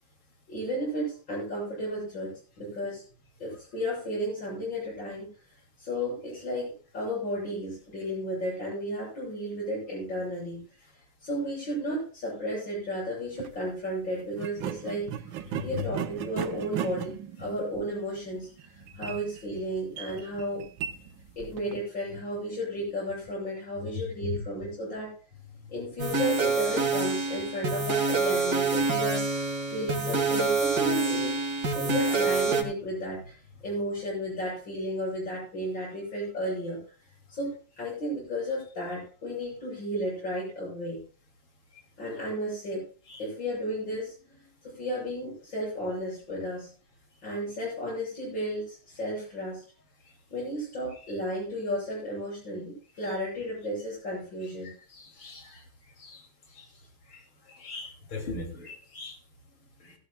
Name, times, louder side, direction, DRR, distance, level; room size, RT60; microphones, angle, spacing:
voice 1, 0.5-3.0 3.4-5.3 5.8-10.6 11.2-15.1 15.6-20.6 21.4-25.1 25.7-29.3 29.7-31.4 31.7-36.8 37.3-41.0 42.0-42.8 43.2-46.7 47.2-49.6 50.3-54.7, equal, 65° left, -7 dB, 8.8 m, -33 dB
sound 1, 13.3-13.6 14.3-21.8, right 10 dB, 70° right, 1.5 m, -37 dB
sound 2, 26.0-32.6, right 3 dB, 50° right, 2.7 m, -27 dB
voice 2, 54.6-55.6 56.0-56.2 56.5-56.7 57.1-57.2 57.5-59.2 59.8-59.9, left 3 dB, 80° left, 3 dB, 3.7 m, -40 dB
16.5 x 15.5 x 2.3 m, 0.38 s
omnidirectional pair, 2.2 m